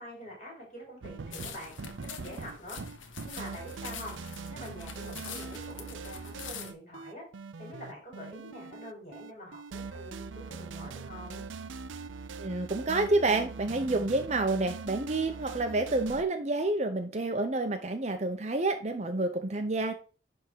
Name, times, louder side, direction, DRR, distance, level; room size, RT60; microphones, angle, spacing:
voice 1, 0.0-1.7 2.0-2.8 3.2-4.1 4.5-7.2 7.6-11.5, equal, 35° left, -2 dB, 5.0 m, -45 dB
sound 1, 1.0-16.2, right 4 dB, 85° right, 0.5 m, -42 dB
sound 2, 1.3-6.7, left 7 dB, 90° left, 1.0 m, -45 dB
voice 2, 12.4-19.9, right 2 dB, 35° right, 7 dB, 0.7 m, -29 dB
10.5 x 3.6 x 4.6 m, 0.36 s
head